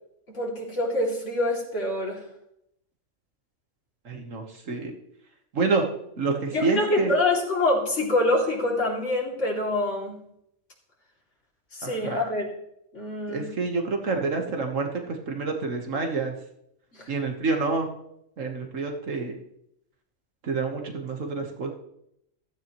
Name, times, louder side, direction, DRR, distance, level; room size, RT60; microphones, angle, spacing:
voice 1, 0.3-2.2 6.5-10.2 11.7-12.5 12.9-13.5 16.9-17.1, left 2 dB, 65° left, -2 dB, 3.1 m, -26 dB
voice 2, 4.1-4.9 5.5-5.8 6.2-7.1 11.8-12.2 13.3-16.4 17.1-17.9 18.4-19.4 20.4-21.7, right 4 dB, 70° right, 3 dB, 1.7 m, -28 dB
15.0 x 13.0 x 3.1 m, 0.76 s
omnidirectional pair, 1.4 m